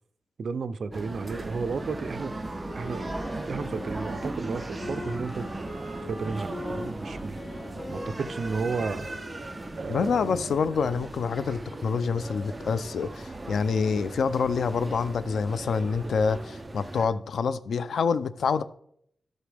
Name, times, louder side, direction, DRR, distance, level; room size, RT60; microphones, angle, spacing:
voice 1, 0.4-2.4 2.7-5.7 6.1-7.4 7.9-9.1 9.8-10.4, right 4 dB, 65° right, 0.6 m, -33 dB
sound 1, 0.9-17.1, right 2 dB, 20° right, 0.7 m, -37 dB
Wind instrument woodwind instrument, 2.7-9.7, left 2 dB, 45° left, 3.2 m, -42 dB
voice 2, 9.9-18.6, left 5 dB, 85° left, 0.5 m, -27 dB
12.0 x 8.0 x 3.4 m
wide cardioid pair, 110°, 0 cm